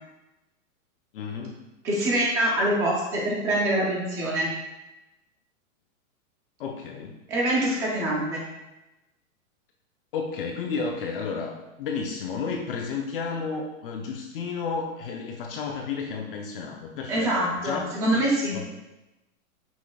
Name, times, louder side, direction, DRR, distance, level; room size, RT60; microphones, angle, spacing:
voice 1, 1.1-1.7 6.6-7.2 10.1-17.9 18.1-18.7, left 5 dB, 40° left, 1 dB, 0.6 m, -32 dB
voice 2, 1.8-4.5 7.3-8.4 17.1-18.5, right 1 dB, 10° right, -4 dB, 0.4 m, -25 dB
8.0 x 6.2 x 2.3 m, 1.0 s
hypercardioid pair, 155°, 42 cm